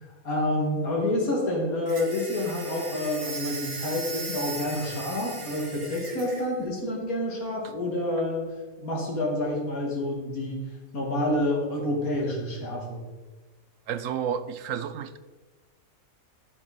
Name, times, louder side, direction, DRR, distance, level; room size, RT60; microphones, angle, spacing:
voice 1, 0.2-10.6 10.9-13.0, left 1 dB, 90° left, -1 dB, 2.9 m, -28 dB
sound 1, 1.9-6.5, right 3 dB, 55° right, 2.2 m, -38 dB
voice 2, 13.9-15.2, right 8 dB, 75° right, 13 dB, 1.0 m, -31 dB
13.0 x 7.6 x 4.3 m, 1.3 s
omnidirectional pair, 1.5 m